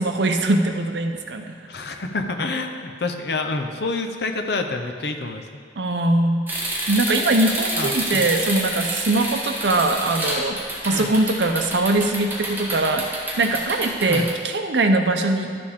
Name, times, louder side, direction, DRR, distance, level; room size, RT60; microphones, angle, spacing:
voice 1, 0.0-1.6 5.8-6.5 6.9-15.6, right 2 dB, 75° right, 5 dB, 0.7 m, -22 dB
voice 2, 1.7-5.5 7.8-8.3 10.9-11.1 14.1-14.3, left 3 dB, 65° left, 5 dB, 0.7 m, -27 dB
sound 1, 6.5-14.3, right 1 dB, 10° right, 1.2 m, -29 dB
11.5 x 6.9 x 3.6 m, 2.1 s
head